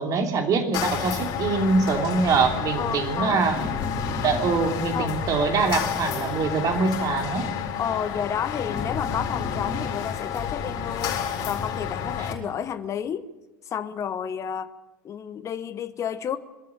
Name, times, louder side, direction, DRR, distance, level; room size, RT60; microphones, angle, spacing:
voice 1, 0.0-3.6 4.2-7.5, right 4 dB, 35° right, 4 dB, 3.1 m, -24 dB
sound 1, 0.7-12.3, left 7 dB, 45° left, 4.6 m, -30 dB
voice 2, 2.7-3.4 4.9-5.2 7.8-13.3 13.6-14.7 15.0-16.4, left 8 dB, 30° left, 12 dB, 1.0 m, -31 dB
23.0 x 13.5 x 9.0 m, 1.1 s
figure-of-eight pair, 80°, 10 cm